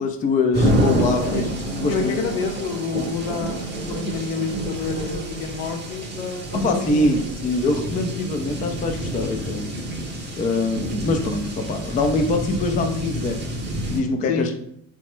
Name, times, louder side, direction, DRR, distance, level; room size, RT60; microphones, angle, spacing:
voice 1, 0.0-1.4 1.7-2.2 6.5-9.6 10.4-13.4 13.9-14.5, left 3 dB, 20° left, 4 dB, 0.3 m, -23 dB
sound 1, 0.5-14.0, right 1 dB, 25° right, 0.8 m, -28 dB
voice 2, 1.8-7.3 14.3-14.5, left 6 dB, 70° left, 5 dB, 0.6 m, -29 dB
2.9 x 2.2 x 3.0 m, 0.71 s
supercardioid pair, 85°, 41 cm